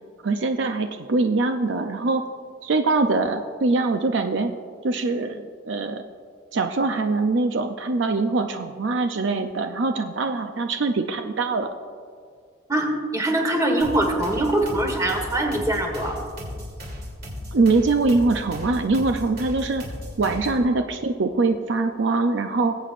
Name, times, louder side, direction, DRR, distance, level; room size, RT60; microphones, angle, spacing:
voice 1, 0.2-2.2 2.6-4.5 4.8-6.0 6.5-11.7 17.5-19.8 20.2-22.8, right 3 dB, 65° right, 6 dB, 0.5 m, -23 dB
voice 2, 12.7-16.2, right 1 dB, 15° right, 3 dB, 1.4 m, -23 dB
sound 1, 13.8-20.7, left 1 dB, 50° right, 2.9 m, -36 dB
20.5 x 8.2 x 2.5 m, 2.1 s
head